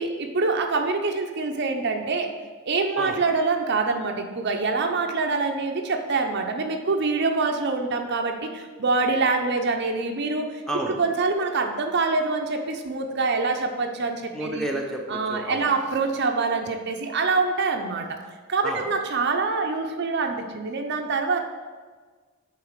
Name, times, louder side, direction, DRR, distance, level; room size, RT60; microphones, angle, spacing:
voice 1, 0.0-2.3 2.7-10.6 11.0-14.7 15.1-18.2 18.5-21.4, right 3 dB, 50° right, 4 dB, 0.6 m, -25 dB
voice 2, 14.3-15.7 18.6-18.9, right 1 dB, ahead, 1 dB, 0.8 m, -31 dB
8.7 x 4.0 x 6.5 m, 1.4 s
head